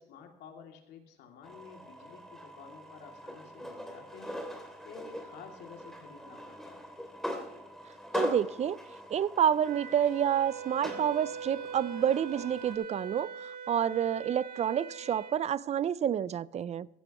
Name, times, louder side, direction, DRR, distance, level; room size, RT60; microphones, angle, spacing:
voice 1, 0.0-4.4 4.8-6.9, left 6 dB, 80° left, 2.7 m, -51 dB
sound 1, 1.4-12.7, equal, ahead, 2.9 m, -41 dB
voice 2, 8.1-8.8 9.1-16.9, right 9 dB, 40° right, 0.5 m, -29 dB
Wind instrument woodwind instrument, 9.6-15.4, right 6 dB, 60° right, 1.5 m, -42 dB
15.5 x 15.0 x 3.0 m
cardioid pair, 110°, 17 cm